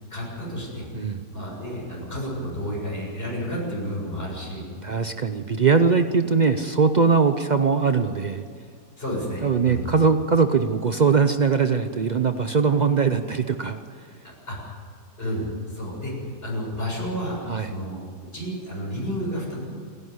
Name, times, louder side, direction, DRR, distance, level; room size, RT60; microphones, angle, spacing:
voice 1, 0.1-0.9 1.3-4.6 9.0-9.9 14.2-14.7 15.2-16.1 16.4-18.0 18.3-19.6, equal, 35° left, -3 dB, 7.2 m, -31 dB
voice 2, 4.8-8.4 9.4-13.8 17.5-17.7, right 5 dB, 90° right, 9 dB, 0.4 m, -21 dB
28.0 x 11.0 x 9.6 m, 2.1 s
omnidirectional pair, 1.8 m